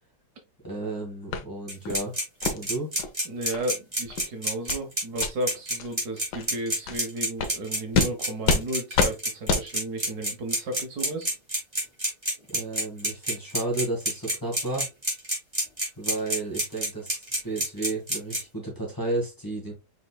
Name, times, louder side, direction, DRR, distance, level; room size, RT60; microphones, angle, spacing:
voice 1, 0.6-2.2 2.5-2.9 12.5-14.9 16.0-19.7, right 2 dB, 10° left, -3 dB, 1.6 m, -32 dB
sound 1, 1.3-1.4 1.8-2.0 2.4-2.6 3.0-3.1 3.5-3.6 4.0-4.2 4.7-4.8 5.2-5.3 5.8-5.9 6.3-6.5 6.9-7.0 7.4-7.5 7.9-8.1 8.4-8.6 8.9-9.1 9.5-9.6, left 5 dB, 75° left, 1.4 m, -26 dB
sound 2, 1.7-18.4, right 1 dB, 15° right, 2.0 m, -27 dB
voice 2, 3.2-11.3, right 1 dB, 70° right, 5 dB, 1.5 m, -34 dB
5.2 x 4.3 x 2.2 m, 0.24 s
omnidirectional pair, 1.8 m